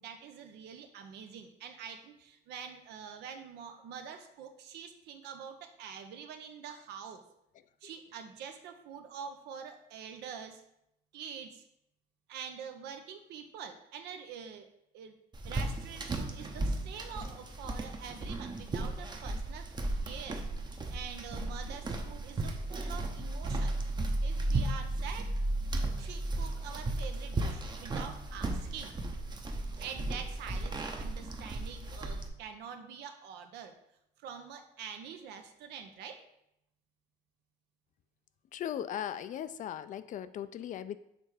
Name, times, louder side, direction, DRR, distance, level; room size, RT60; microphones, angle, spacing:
voice 1, 0.0-7.2 7.8-10.6 11.1-11.6 12.3-14.7 14.9-15.1 15.4-19.7 20.0-20.4 20.9-23.8 24.2-25.3 26.0-29.0 29.8-33.7 34.2-36.2, right 7 dB, 80° right, 7 dB, 0.8 m, -45 dB
sound 1, 15.3-32.3, right 2 dB, 25° right, 0.8 m, -35 dB
voice 2, 38.5-41.0, left 10 dB, 50° left, 13 dB, 0.4 m, -38 dB
6.6 x 3.3 x 4.8 m, 0.79 s
cardioid pair, 110°, 17 cm